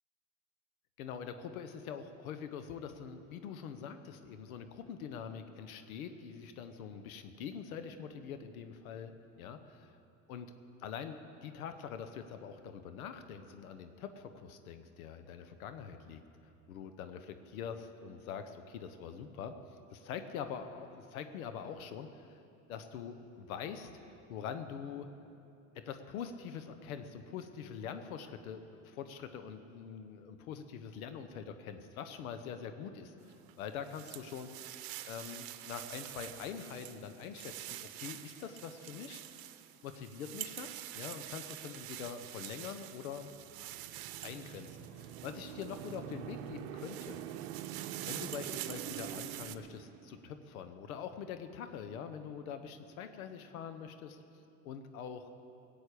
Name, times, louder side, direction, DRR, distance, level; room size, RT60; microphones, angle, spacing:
voice 1, 1.0-10.0 10.3-10.5 10.8-16.2 16.7-19.6 19.9-22.4 22.7-23.9 24.3-25.1 25.7-34.6 35.1-39.2 39.8-43.3 44.2-47.2 48.1-54.2 54.6-55.3, left 7 dB, 85° left, 9 dB, 1.0 m, -44 dB
sound 1, 33.3-46.1 46.6-49.5, right 15 dB, 60° right, 0.9 m, -46 dB
sound 2, 43.3-50.3, right 10 dB, 85° right, 0.7 m, -45 dB
15.5 x 8.4 x 8.4 m, 2.7 s
hypercardioid pair, 85°, 41 cm